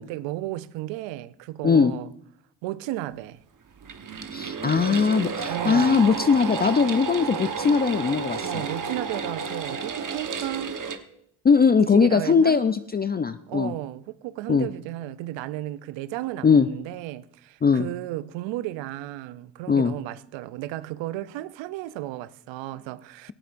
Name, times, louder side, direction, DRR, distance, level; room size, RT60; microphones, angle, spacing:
voice 1, 0.0-2.1 2.6-3.4 5.5-6.0 8.4-10.8 11.8-12.6 13.5-23.3, right 15 dB, 85° right, 0.6 m, -34 dB
sound 1, 3.8-11.0, right 5 dB, 45° right, 1.2 m, -31 dB
voice 2, 4.3-8.5 11.4-13.7 14.5-14.7 16.4-16.7 17.6-17.9 19.7-19.9, left 5 dB, 20° left, 0.5 m, -20 dB
18.5 x 15.0 x 2.6 m
supercardioid pair, 60°, 44 cm